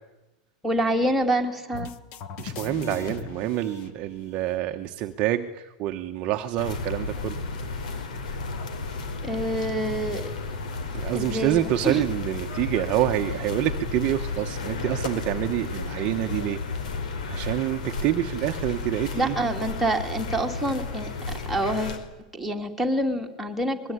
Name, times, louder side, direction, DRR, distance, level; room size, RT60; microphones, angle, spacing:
voice 1, 0.6-1.9 9.2-10.3 11.1-12.0 19.1-21.1 21.5-22.0 22.3-23.9, right 1 dB, ahead, 0 dB, 2.7 m, -26 dB
sound 1, 1.7-4.6, left 7 dB, 35° left, 1.4 m, -38 dB
voice 2, 2.4-7.4 10.9-16.6 17.2-19.4, right 13 dB, 30° right, 5 dB, 1.1 m, -27 dB
sound 2, 6.6-22.0, left 3 dB, 85° left, 5.0 m, -33 dB
24.0 x 21.5 x 9.6 m, 1.0 s
supercardioid pair, 170°, 4 cm